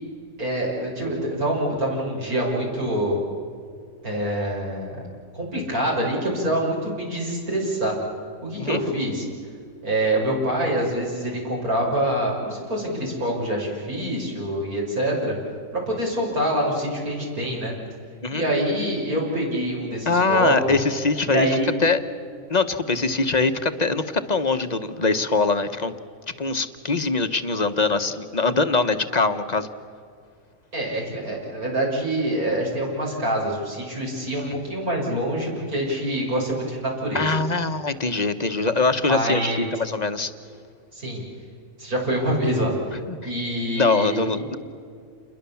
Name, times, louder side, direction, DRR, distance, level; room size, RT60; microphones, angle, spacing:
voice 1, 0.4-3.2 4.0-5.0 5.3-8.0 8.4-9.2 9.8-15.3 15.9-17.7 18.3-20.7 21.3-21.7 30.7-37.3 38.4-38.6 39.1-39.7 40.9-41.2 41.8-42.7 43.2-44.4, right 1 dB, 85° right, -2 dB, 6.5 m, -25 dB
voice 2, 20.1-22.0 22.5-25.9 26.4-29.7 37.1-40.3 42.9-43.2 43.8-44.6, left 3 dB, 30° left, 8 dB, 1.1 m, -23 dB
29.0 x 22.0 x 7.1 m, 2.3 s
omnidirectional pair, 1.5 m